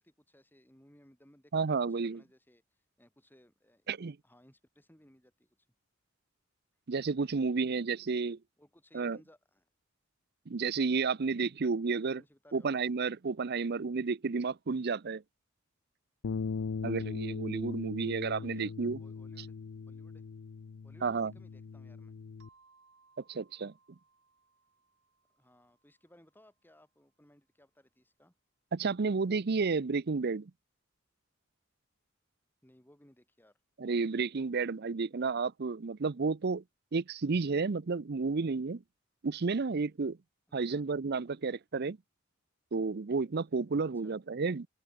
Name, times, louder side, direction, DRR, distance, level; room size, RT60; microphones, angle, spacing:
voice 1, 0.0-1.6 2.0-2.6 3.0-3.9 4.2-5.5 8.6-9.7 12.0-12.7 18.4-18.7 19.0-19.6 19.9-20.2 20.8-22.2 25.3-28.3 32.6-33.6 40.6-40.8 43.9-44.2, equal, 10° left, 7.5 m, -62 dB
voice 2, 1.5-2.2 3.9-4.2 6.9-8.4 8.9-9.2 10.5-12.2 12.5-15.2 16.8-19.0 21.0-21.3 23.3-23.7 28.7-30.5 33.8-36.6 36.9-38.8 39.2-40.2 40.5-42.0 42.7-44.7, right 4 dB, 55° right, 0.6 m, -31 dB
sound 1, 16.2-22.5, left 5 dB, 75° left, 0.5 m, -39 dB
sound 2, 22.4-26.8, right 4 dB, 70° right, 8.0 m, -68 dB
open air
head